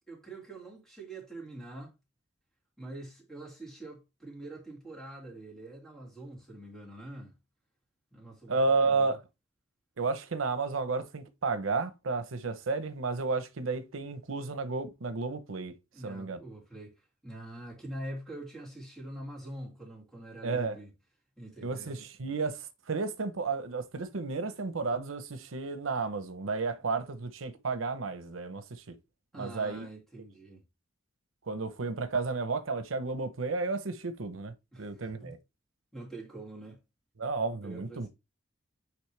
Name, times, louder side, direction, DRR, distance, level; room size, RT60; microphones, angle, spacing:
voice 1, 0.1-1.9 2.8-7.4 8.1-9.2 15.9-20.9 21.4-22.0 29.3-30.6 34.7-35.3 35.9-36.8 37.4-38.1, right 1 dB, ahead, 2.3 m, -45 dB
voice 2, 8.5-9.2 10.0-15.7 16.0-16.4 20.4-20.8 21.6-29.0 29.4-29.9 31.5-34.5 34.8-35.4 37.2-38.1, right 4 dB, 90° right, 0.8 m, -32 dB
9.2 x 3.3 x 3.3 m
head